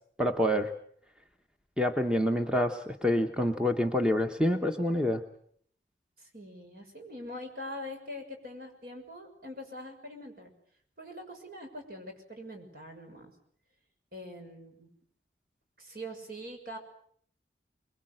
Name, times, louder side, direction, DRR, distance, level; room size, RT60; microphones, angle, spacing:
voice 1, 0.2-0.7 1.8-5.2, left 1 dB, 5° right, 4 dB, 1.1 m, -27 dB
voice 2, 6.2-10.5 11.0-13.3 14.1-14.9 15.8-16.8, left 1 dB, 55° right, 4 dB, 6.2 m, -43 dB
25.0 x 22.0 x 7.9 m, 0.62 s
head